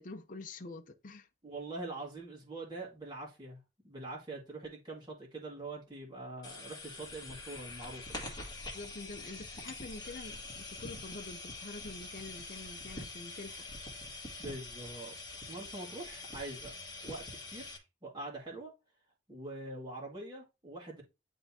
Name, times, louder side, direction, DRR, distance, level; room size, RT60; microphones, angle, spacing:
voice 1, 0.0-1.3 8.7-10.4 10.7-13.6, left 3 dB, 45° left, 0.7 m, -46 dB
voice 2, 1.4-3.6 3.8-8.4 14.4-15.1 15.5-16.7 17.0-18.7 19.3-21.0, right 2 dB, 25° right, 1.9 m, -44 dB
sound 1, 6.4-17.8, left 2 dB, 20° left, 1.8 m, -45 dB
10.0 x 3.4 x 2.8 m
head